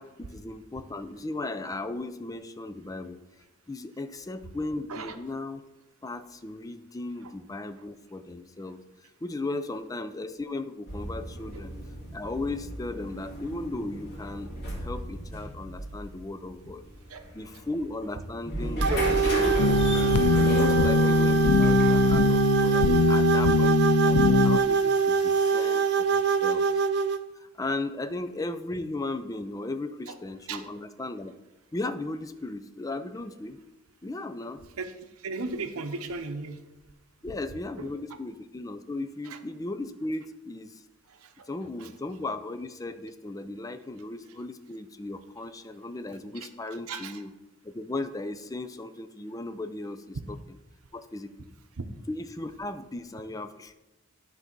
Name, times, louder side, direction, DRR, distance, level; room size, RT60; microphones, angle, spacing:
voice 1, 0.0-3.2 3.7-5.6 6.0-8.8 9.2-11.7 12.1-14.5 14.8-16.8 17.3-19.6 20.1-26.6 27.4-31.3 31.7-33.6 34.0-34.6 37.2-40.8 41.5-47.3 47.6-50.2 50.9-51.3 52.1-53.7, left 2 dB, 15° left, 10 dB, 0.4 m, -36 dB
sound 1, 10.9-22.5, equal, 50° left, 2.2 m, -34 dB
sound 2, 18.8-27.2, right 6 dB, 50° right, 0.4 m, -24 dB
sound 3, 19.6-24.6, left 5 dB, 80° left, 0.4 m, -22 dB
voice 2, 34.8-36.6 37.8-38.2 39.2-39.4 41.2-41.3 41.8-41.9 46.1-46.5 46.9-47.2 51.8-51.9, right 3 dB, 80° right, 8 dB, 0.7 m, -37 dB
10.5 x 4.0 x 5.9 m, 1.0 s
head